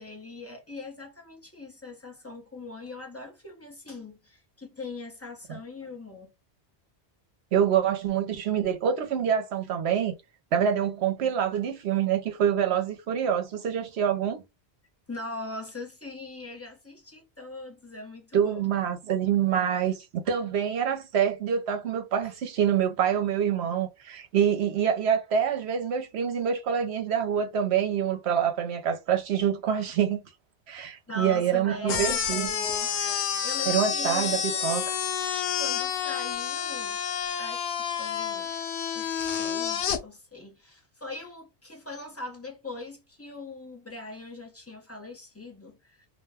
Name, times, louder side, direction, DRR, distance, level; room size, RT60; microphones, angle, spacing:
voice 1, 0.0-6.3 15.1-18.7 22.2-22.3 31.1-32.9 33.2-34.4 35.2-37.0 37.4-37.7 38.0-38.5 38.9-46.1, left 2 dB, 15° left, 0.7 m, -41 dB
voice 2, 7.5-10.1 10.5-14.4 18.3-30.2 30.7-32.5 33.7-34.9, right 8 dB, 75° right, 0.9 m, -26 dB
sound 1, 31.9-40.0, left 8 dB, 80° left, 0.9 m, -29 dB
2.5 x 2.1 x 3.4 m
omnidirectional pair, 1.1 m